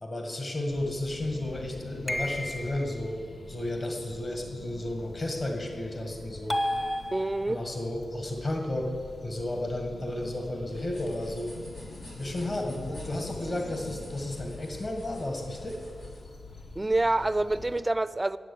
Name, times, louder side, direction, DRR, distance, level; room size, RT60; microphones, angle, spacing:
voice 1, 0.0-3.2 3.5-6.6 7.5-8.9 9.2-11.5 12.2-15.8, left 1 dB, 40° left, 1.7 m, -33 dB
sound 1, 0.7-17.8, left 2 dB, 70° left, 1.2 m, -45 dB
sound 2, 2.1-3.0 6.5-7.7, left 1 dB, 25° left, 0.9 m, -31 dB
voice 2, 7.1-7.7 16.8-18.4, right 2 dB, 25° right, 0.4 m, -27 dB
sound 3, 10.6-16.2, left 1 dB, 90° left, 2.9 m, -52 dB
9.1 x 8.2 x 8.4 m
cardioid pair, 55°, 0 cm